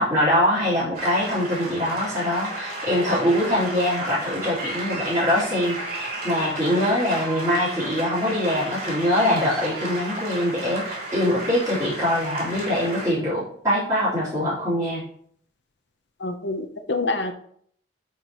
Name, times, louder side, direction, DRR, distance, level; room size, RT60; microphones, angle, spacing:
voice 1, 0.0-15.0, left 1 dB, 15° right, -15 dB, 3.9 m, -23 dB
sound 1, 0.9-13.1, right 2 dB, 50° right, 3.8 m, -33 dB
voice 2, 16.2-17.3, left 3 dB, 70° left, 6 dB, 0.8 m, -26 dB
10.5 x 5.9 x 3.0 m, 0.63 s
head